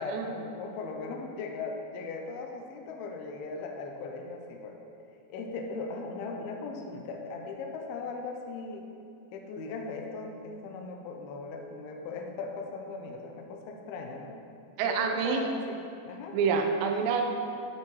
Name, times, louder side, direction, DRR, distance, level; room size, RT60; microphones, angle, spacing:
voice 1, 0.0-4.8 5.3-8.9 9.3-14.4 14.8-15.8 16.1-16.4, left 4 dB, 80° left, 2 dB, 2.3 m, -38 dB
voice 2, 14.8-15.4 16.3-17.2, right 6 dB, 85° right, 4 dB, 3.0 m, -27 dB
11.5 x 7.7 x 3.1 m, 2.6 s
omnidirectional pair, 5.0 m